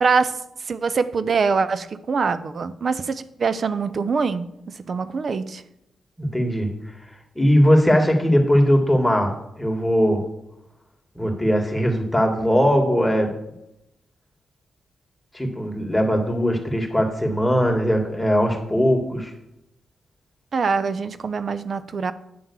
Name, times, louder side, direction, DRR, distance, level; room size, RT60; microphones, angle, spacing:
voice 1, 0.0-5.6 20.5-22.1, right 5 dB, 60° right, 13 dB, 0.6 m, -24 dB
voice 2, 6.2-6.7 7.4-10.2 11.2-13.3 15.3-19.3, equal, 5° left, 2 dB, 2.1 m, -20 dB
9.5 x 3.6 x 7.1 m, 0.83 s
supercardioid pair, 50°, 0 cm